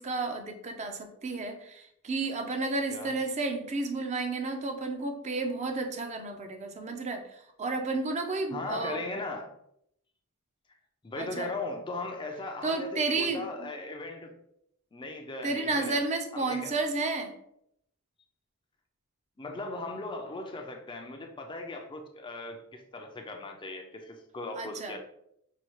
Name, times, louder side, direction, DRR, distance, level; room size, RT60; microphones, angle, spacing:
voice 1, 0.0-7.2 7.6-9.0 11.2-11.5 12.6-13.7 15.4-17.3 24.6-24.9, right 3 dB, 30° right, 5 dB, 0.5 m, -32 dB
voice 2, 8.5-9.5 11.0-14.4 14.9-16.0 16.3-16.7 19.4-25.0, left 2 dB, 20° left, 3 dB, 0.4 m, -38 dB
5.6 x 2.3 x 3.0 m, 0.74 s
head